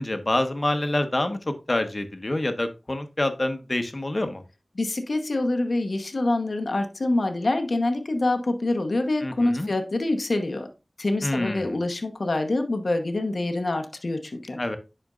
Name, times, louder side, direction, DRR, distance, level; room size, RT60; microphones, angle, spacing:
voice 1, 0.0-1.4 1.7-4.4 9.2-9.7 11.2-11.8 14.6-14.8, left 1 dB, 50° left, 8 dB, 1.1 m, -26 dB
voice 2, 4.7-10.7 11.0-14.6, left 2 dB, 80° left, 6 dB, 1.0 m, -26 dB
10.5 x 4.4 x 2.4 m, 0.29 s
wide cardioid pair, 40°, 0 cm